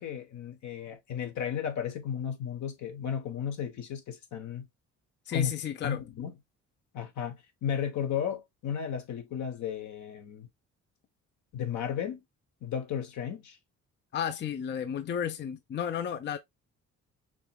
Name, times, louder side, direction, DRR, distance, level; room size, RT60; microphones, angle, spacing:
voice 1, 0.0-4.7 5.3-5.5 5.8-6.3 6.9-10.5 11.5-12.2 12.6-13.6, left 8 dB, 70° left, 1.2 m, -34 dB
voice 2, 5.3-6.0 14.1-16.4, left 8 dB, 35° left, 0.5 m, -32 dB
5.3 x 3.0 x 2.3 m
cardioid pair, 90°, 30 cm